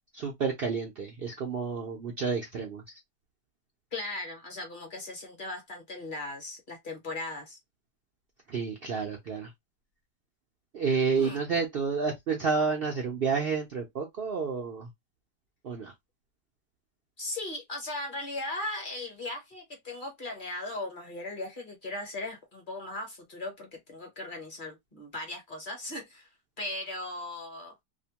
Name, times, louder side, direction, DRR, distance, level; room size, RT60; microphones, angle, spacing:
voice 1, 0.1-2.8 8.5-9.5 10.7-14.9 15.6-15.9, right 5 dB, 75° right, 0.5 m, -30 dB
voice 2, 3.9-7.6 11.1-11.4 17.2-26.3 26.6-27.7, left 2 dB, 40° left, 0.9 m, -38 dB
2.8 x 2.1 x 2.8 m
omnidirectional pair, 1.7 m